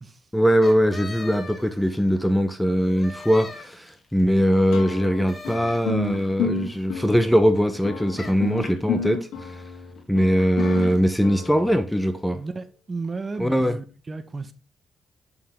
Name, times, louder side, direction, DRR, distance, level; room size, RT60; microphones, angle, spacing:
voice 1, 0.3-9.6 10.1-12.4 13.4-13.8, equal, 5° left, 1.0 m, -21 dB
sound 1, 0.6-2.2 2.8-4.2 5.3-6.3 8.1-8.6 10.6-11.0, left 3 dB, 30° left, 2.1 m, -41 dB
sound 2, 4.7-12.1, left 5 dB, 80° left, 3.0 m, -31 dB
voice 2, 12.3-14.5, right 3 dB, 30° right, 1.4 m, -33 dB
8.3 x 7.2 x 3.7 m
cardioid pair, 90°, 0 cm